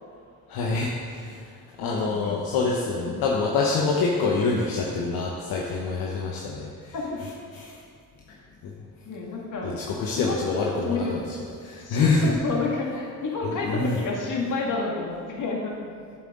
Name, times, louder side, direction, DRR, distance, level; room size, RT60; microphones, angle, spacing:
voice 1, 0.5-0.9 1.2-1.4 1.8-6.7 7.5-7.7 9.6-11.2 11.6-12.3 13.4-14.0, left 4 dB, 80° left, -2 dB, 0.9 m, -25 dB
voice 2, 1.8-2.4 3.0-3.3 6.9-7.2 9.1-9.8 10.1-11.2 11.8-15.8, left 3 dB, 60° left, -2 dB, 2.0 m, -30 dB
8.8 x 7.4 x 3.7 m, 2.2 s
supercardioid pair, 70°, 36 cm